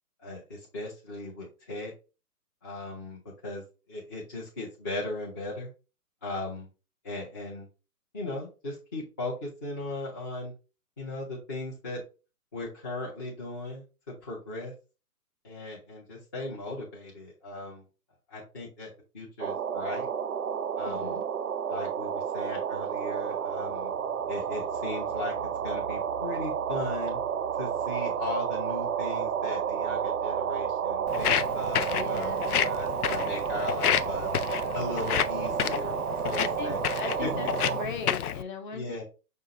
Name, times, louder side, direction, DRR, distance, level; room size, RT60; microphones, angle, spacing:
voice 1, 0.2-1.9 2.6-3.6 3.9-5.7 6.2-6.7 7.0-7.7 8.1-10.5 11.0-12.0 12.5-14.7 15.4-17.8 18.3-20.1 20.8-21.2 21.7-23.9 24.3-25.3 25.6-27.2 27.6-34.3 34.7-36.0 36.2-36.8 37.2-37.5 38.7-39.0, left 2 dB, 15° left, 0.5 m, -37 dB
sound 1, 19.4-37.8, right 8 dB, 60° right, 0.6 m, -31 dB
voice 2, 20.8-21.2 31.9-32.7 36.4-37.5 37.7-39.0, left 4 dB, 30° left, 0.8 m, -38 dB
Walk footsteps, 31.1-38.4, left 10 dB, 70° left, 0.5 m, -30 dB
5.5 x 2.4 x 3.7 m
figure-of-eight pair, 135°, 47 cm